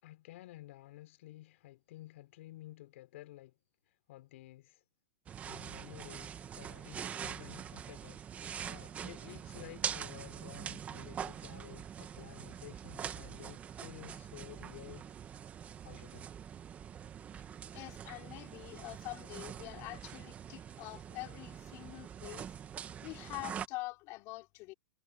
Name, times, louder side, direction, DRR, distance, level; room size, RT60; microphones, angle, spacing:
voice 1, 0.0-3.6 3.8-4.8 5.4-15.1 15.8-16.3, left 16 dB, 55° left, 4.9 m, -53 dB
sound 1, 5.3-23.7, right 8 dB, 15° right, 1.2 m, -44 dB
voice 2, 17.7-22.5 23.0-24.7, left 22 dB, 35° left, 3.0 m, -45 dB
hypercardioid pair, 150°, 8 cm